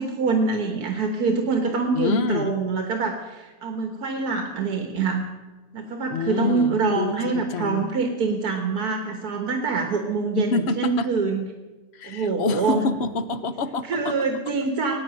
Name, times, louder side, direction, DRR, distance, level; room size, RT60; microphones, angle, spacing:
voice 1, 0.0-5.3 5.7-11.5 12.0-12.8 13.9-15.0, right 4 dB, 80° right, 5 dB, 1.8 m, -25 dB
voice 2, 1.9-2.5 6.1-7.9 10.4-11.1 11.9-14.1, left 4 dB, 50° left, 11 dB, 1.1 m, -27 dB
18.0 x 9.0 x 9.0 m, 1.2 s
omnidirectional pair, 1.6 m